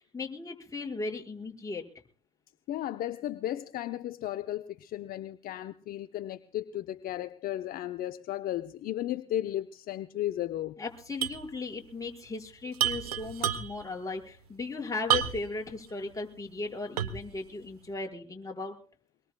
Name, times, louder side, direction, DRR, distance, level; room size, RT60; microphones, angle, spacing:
voice 1, 0.0-1.8 10.8-18.8, left 3 dB, 15° left, 1 dB, 5.4 m, -37 dB
voice 2, 2.7-10.8, left 13 dB, 50° left, 10 dB, 0.8 m, -34 dB
sound 1, 11.2-11.5 11.7-11.8 12.7-13.9 15.1-15.6 16.1-16.2 17.0-17.3, right 10 dB, 90° right, 1.1 m, -29 dB
24.0 x 22.5 x 2.3 m, 0.40 s
hypercardioid pair, 65°, 19 cm